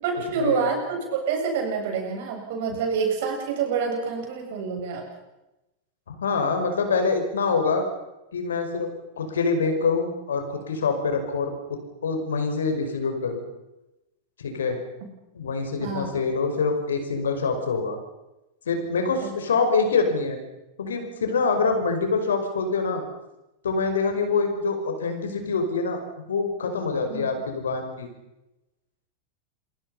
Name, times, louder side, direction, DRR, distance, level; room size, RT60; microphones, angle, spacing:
voice 1, 0.0-5.0 15.8-16.1 19.2-19.3 27.1-27.3, right 5 dB, 50° right, 2 dB, 8.0 m, -27 dB
voice 2, 6.1-7.8 8.3-8.9 9.2-11.5 12.0-13.4 14.4-14.8 15.3-18.0 18.7-20.4 20.8-23.0 23.6-26.0 26.3-28.1, left 4 dB, 65° left, 6 dB, 5.5 m, -25 dB
27.5 x 24.5 x 5.7 m, 0.95 s
figure-of-eight pair, 90°, 0 cm